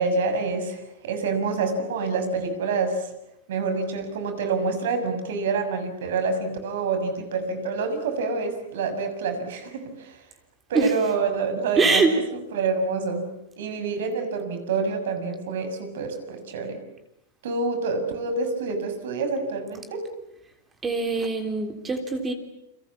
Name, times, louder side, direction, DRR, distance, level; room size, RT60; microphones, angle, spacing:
voice 1, 0.0-3.1 3.5-10.2 10.7-12.2 12.5-13.2 13.6-16.8 17.4-20.0, right 4 dB, 75° right, 8 dB, 6.6 m, -27 dB
voice 2, 11.8-12.1 20.8-22.3, right 4 dB, 15° right, 5 dB, 3.3 m, -23 dB
29.5 x 24.5 x 7.3 m, 0.81 s
supercardioid pair, 150°, 0 cm